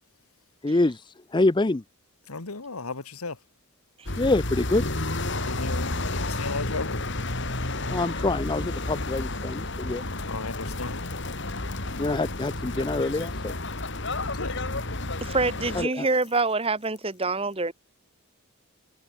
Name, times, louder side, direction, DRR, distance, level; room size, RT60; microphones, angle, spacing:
voice 1, 0.6-1.8 4.2-4.8 7.9-10.0 12.0-13.6 15.7-16.1, left 2 dB, 20° left, 0.5 m, -26 dB
voice 2, 2.3-3.4 5.4-7.1 10.2-11.1 14.3-14.6, left 3 dB, 80° left, 1.9 m, -35 dB
sound 1, 4.1-15.9, left 2 dB, 55° left, 3.2 m, -31 dB
voice 3, 15.2-17.7, right 3 dB, 25° right, 1.5 m, -26 dB
head